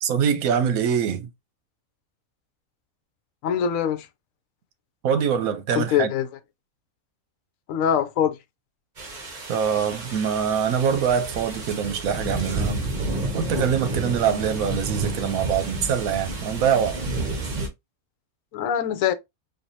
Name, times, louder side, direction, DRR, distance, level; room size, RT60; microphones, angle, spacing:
voice 1, 0.0-1.3 5.0-6.1 9.5-12.8 13.3-17.0, right 7 dB, 75° right, 1.1 m, -24 dB
voice 2, 3.4-4.1 5.7-6.3 7.7-8.4 18.5-19.1, left 9 dB, 70° left, 0.9 m, -23 dB
sound 1, 9.0-17.7, right 2 dB, 35° right, 1.0 m, -30 dB
4.5 x 2.6 x 2.6 m
omnidirectional pair, 1.5 m